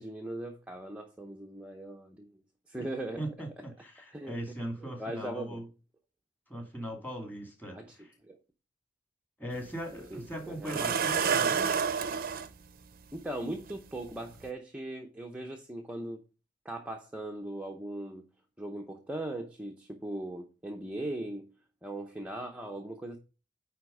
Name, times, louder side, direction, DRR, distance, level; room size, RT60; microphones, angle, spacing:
voice 1, 0.0-2.4 2.7-3.2 4.1-4.3 4.8-5.6 7.7-7.9 8.2-8.4 10.1-10.9 13.1-16.2 16.6-18.2 18.6-21.5 21.8-23.2, right 1 dB, 5° right, 0.7 m, -39 dB
voice 2, 3.2-5.7 6.5-8.1 9.4-11.8, right 1 dB, 10° left, 2.2 m, -39 dB
sound 1, 9.5-9.6 10.7-12.5 13.7-13.8 14.3-14.5, right 6 dB, 50° right, 0.6 m, -28 dB
9.6 x 3.5 x 5.3 m
head